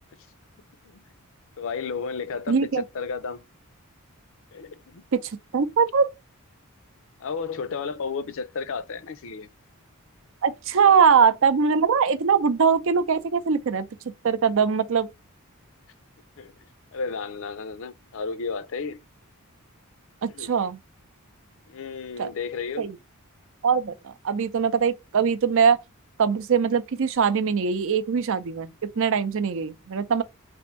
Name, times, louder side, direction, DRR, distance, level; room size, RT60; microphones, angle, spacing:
voice 1, 1.6-3.4 4.5-5.0 7.2-9.5 16.4-16.5 16.9-19.0 20.3-20.5 21.7-22.9, left 5 dB, 60° left, 0.5 m, -33 dB
voice 2, 2.5-2.8 5.1-6.1 10.4-13.9 14.2-15.1 20.2-20.8 22.2-22.3 22.8-23.0 23.6-25.8 26.2-30.2, right 6 dB, 60° right, 0.5 m, -22 dB
3.5 x 2.6 x 4.3 m
head